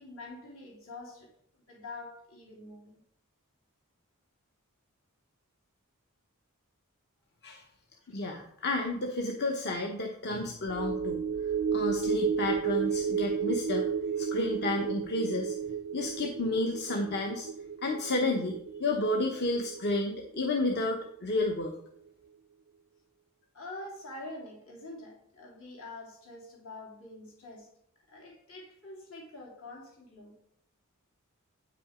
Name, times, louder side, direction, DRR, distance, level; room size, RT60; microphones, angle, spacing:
voice 1, 0.0-3.0 8.0-8.1 23.5-27.7 28.1-30.4, left 2 dB, 70° left, 3.2 m, -46 dB
voice 2, 8.1-11.2 11.7-13.9 14.2-15.5 15.9-17.5 17.8-21.8, left 2 dB, 50° left, 0.9 m, -31 dB
sound 1, 10.7-21.3 21.6-21.8, right 6 dB, 60° right, 0.4 m, -33 dB
8.9 x 5.9 x 5.0 m
head